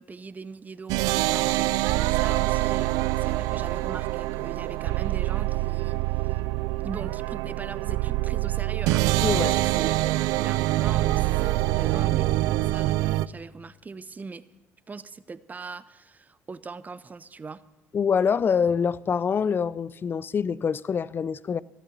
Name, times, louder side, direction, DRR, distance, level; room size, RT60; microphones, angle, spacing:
voice 1, 0.0-6.4 6.8-10.0 10.3-14.5 14.9-17.6, right 4 dB, 25° right, 0.7 m, -41 dB
sound 1, 0.9-13.3, right 18 dB, 80° right, 0.4 m, -25 dB
voice 2, 9.2-9.6 17.9-21.6, left 6 dB, 35° left, 0.4 m, -25 dB
14.0 x 12.5 x 6.0 m
supercardioid pair, 70°, 6 cm